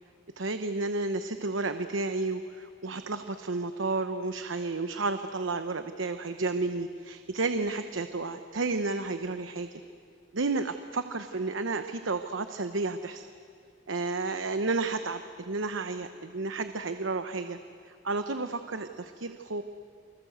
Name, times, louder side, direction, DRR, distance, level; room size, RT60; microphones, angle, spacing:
voice 1, 0.4-9.8 10.3-13.3 13.9-17.6 17.9-19.6, right 3 dB, 80° right, 9 dB, 0.9 m, -32 dB
28.5 x 24.5 x 8.0 m, 2.5 s
head